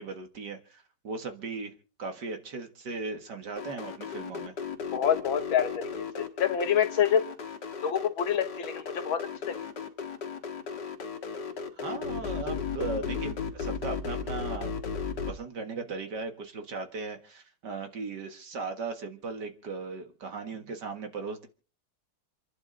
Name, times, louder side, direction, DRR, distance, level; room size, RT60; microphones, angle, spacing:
voice 1, 0.0-1.7 2.0-4.5 11.7-14.8 15.3-21.5, right 4 dB, 55° right, 2.3 m, -37 dB
sound 1, 3.6-15.3, left 6 dB, 55° left, 2.1 m, -35 dB
voice 2, 4.9-5.8 6.2-7.2 7.8-9.7, left 8 dB, 70° left, 2.0 m, -27 dB
28.0 x 11.0 x 3.9 m
omnidirectional pair, 2.3 m